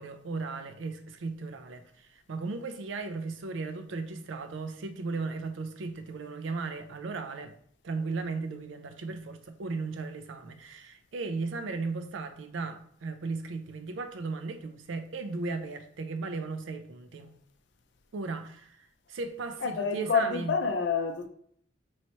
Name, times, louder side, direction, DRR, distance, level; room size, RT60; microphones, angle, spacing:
voice 1, 0.0-7.5 7.8-17.3 18.1-20.5, right 3 dB, 80° right, 0.4 m, -36 dB
voice 2, 19.6-21.3, left 5 dB, 65° left, 0.4 m, -28 dB
3.1 x 2.8 x 4.2 m
head